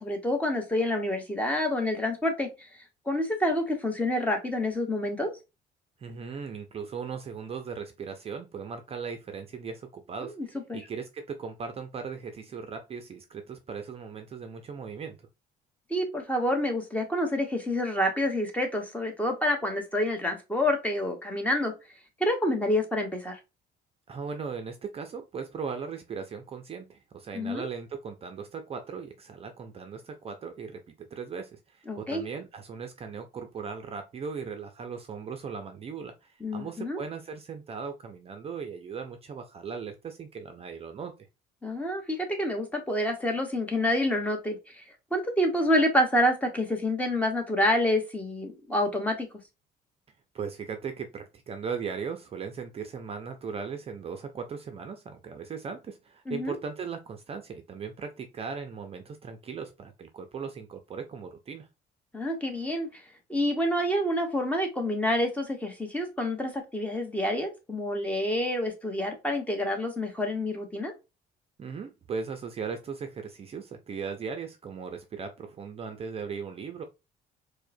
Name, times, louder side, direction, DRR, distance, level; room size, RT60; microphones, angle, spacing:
voice 1, 0.0-2.5 3.1-5.3 10.2-10.8 15.9-21.7 22.2-23.4 27.3-27.7 31.9-32.2 36.4-37.0 41.6-44.8 45.1-49.3 56.3-56.6 62.1-63.0 63.3-70.9, left 1 dB, 10° left, 3 dB, 1.0 m, -28 dB
voice 2, 6.0-10.4 10.7-15.2 24.1-41.1 50.3-61.7 71.6-76.8, right 6 dB, 35° right, 6 dB, 0.5 m, -38 dB
4.6 x 2.2 x 2.6 m, 0.26 s
cardioid pair, 110°, 17 cm